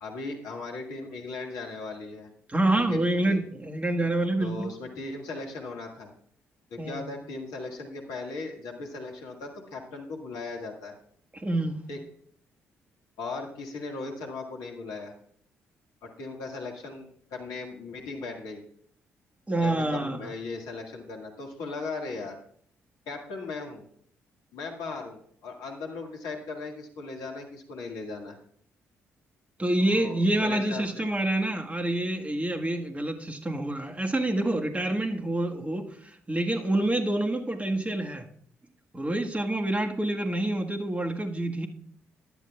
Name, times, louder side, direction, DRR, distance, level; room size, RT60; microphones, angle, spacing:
voice 1, 0.0-2.3 2.8-3.0 3.2-3.4 4.4-6.1 6.7-10.9 11.9-12.0 13.2-15.1 16.0-18.6 19.6-22.4 23.1-23.9 24.5-28.4 29.8-31.1, left 3 dB, 70° left, 1 dB, 1.9 m, -38 dB
voice 2, 2.5-4.7 6.8-7.1 11.3-11.8 19.5-20.3 29.6-38.3 38.9-41.7, right 1 dB, 20° right, 4 dB, 1.6 m, -27 dB
16.0 x 10.5 x 2.4 m, 0.62 s
figure-of-eight pair, 40°, 7 cm